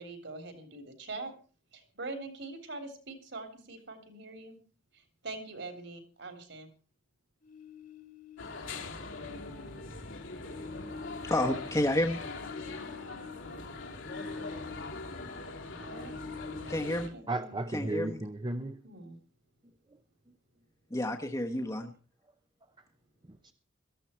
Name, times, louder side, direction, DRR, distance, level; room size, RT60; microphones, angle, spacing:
voice 1, 0.0-1.3 1.7-4.6 4.9-6.7 15.4-16.2 17.1-18.0 18.8-19.2, right 3 dB, 60° right, 7 dB, 3.6 m, -44 dB
sound 1, 7.4-8.7 9.1-15.2 15.4-17.0, left 5 dB, 45° left, 1.8 m, -47 dB
sound 2, 8.4-17.1, left 3 dB, 70° left, 2.4 m, -42 dB
voice 2, 11.2-12.2 16.7-17.1 17.7-18.2 20.9-21.9, left 1 dB, 15° left, 3 dB, 1.1 m, -30 dB
voice 3, 17.3-18.8 19.9-20.0 20.3-20.4 23.2-23.5, right 2 dB, 25° right, 8 dB, 0.7 m, -35 dB
18.0 x 14.0 x 4.4 m, 0.39 s
head